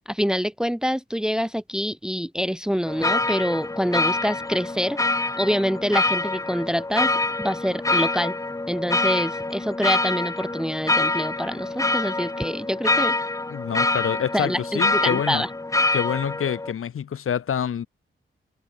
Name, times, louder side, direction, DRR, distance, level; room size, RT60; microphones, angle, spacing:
voice 1, 0.1-5.0 5.4-8.4 8.7-13.1 14.3-15.5, equal, 5° right, 1.0 m, -26 dB
sound 1, 2.9-16.7, left 2 dB, 15° left, 1.3 m, -25 dB
voice 2, 13.5-15.4 15.9-17.9, left 8 dB, 85° left, 5.0 m, -27 dB
wide cardioid pair, 155°, 21 cm